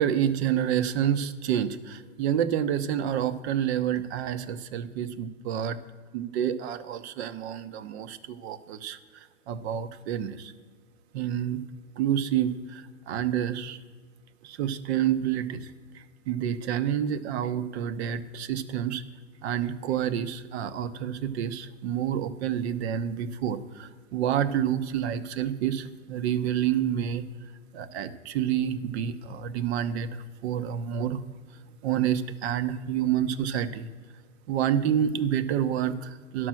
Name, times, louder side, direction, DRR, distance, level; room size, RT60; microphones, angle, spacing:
voice 1, 0.0-5.8 6.1-10.5 11.1-11.6 12.0-13.8 14.4-19.0 19.4-27.2 27.7-31.2 31.8-33.9 34.5-36.5, right 9 dB, 60° right, 12 dB, 0.9 m, -28 dB
11.5 x 6.2 x 7.6 m, 1.5 s
hypercardioid pair, 125°, 37 cm